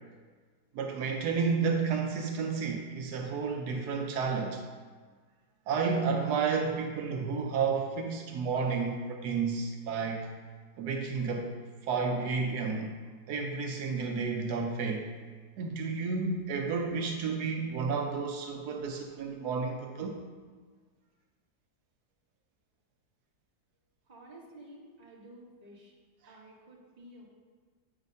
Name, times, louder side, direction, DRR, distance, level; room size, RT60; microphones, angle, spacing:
voice 1, 0.7-4.6 5.7-10.3 10.8-11.5 11.9-13.0 13.3-15.1 15.6-20.2, right 5 dB, 80° right, 2 dB, 1.2 m, -31 dB
voice 2, 24.1-25.9 26.3-27.3, right 1 dB, 25° right, -4 dB, 1.4 m, -52 dB
8.1 x 3.3 x 5.3 m, 1.5 s
omnidirectional pair, 1.7 m